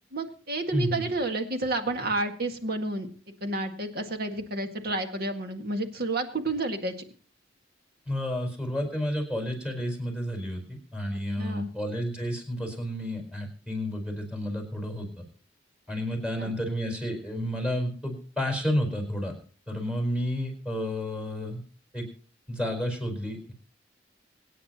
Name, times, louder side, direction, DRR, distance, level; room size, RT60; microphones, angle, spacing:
voice 1, 0.1-3.1 3.4-6.9 11.4-11.7 16.4-16.5, right 2 dB, 55° right, 5 dB, 1.9 m, -30 dB
voice 2, 0.7-1.1 8.1-15.2 15.9-19.3 19.7-21.6 21.9-22.1 22.5-23.4, equal, 5° right, 3 dB, 4.5 m, -31 dB
25.0 x 9.3 x 2.9 m, 0.41 s
head